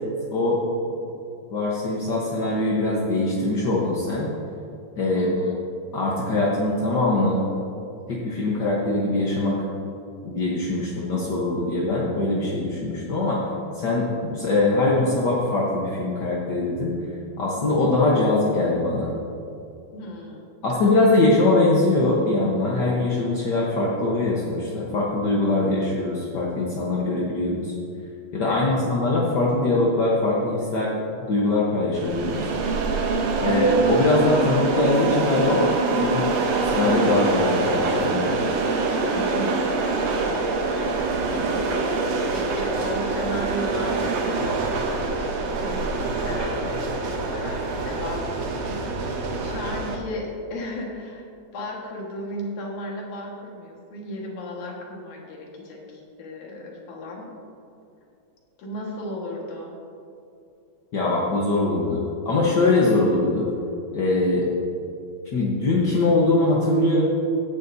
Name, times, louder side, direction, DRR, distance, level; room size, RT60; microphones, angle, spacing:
voice 1, 1.5-4.3 5.0-5.3 5.9-7.4 8.1-9.6 10.2-13.4 13.7-16.9 17.4-19.1 20.6-27.7 28.3-30.9 31.2-32.5 33.4-35.7 36.0-36.3 36.6-38.3 60.9-63.4 63.9-64.5 65.3-67.0, left 2 dB, 55° left, -5 dB, 1.2 m, -22 dB
voice 2, 5.1-5.6 19.9-20.5 28.5-28.8 39.1-39.6 39.8-45.9 46.2-51.2 51.5-57.3 58.6-59.7, left 1 dB, 70° left, -2 dB, 3.1 m, -35 dB
sound 1, 31.9-50.0, right 3 dB, 65° right, 2.0 m, -25 dB
16.5 x 10.5 x 2.8 m, 2.6 s
omnidirectional pair, 3.6 m